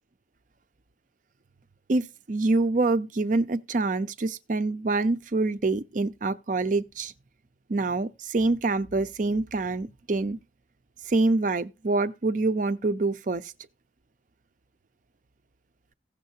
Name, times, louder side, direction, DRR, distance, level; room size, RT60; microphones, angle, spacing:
voice 1, 1.9-7.1 7.7-10.4 11.1-13.5, right 3 dB, 45° right, 0.5 m, -26 dB
16.5 x 6.4 x 2.8 m
head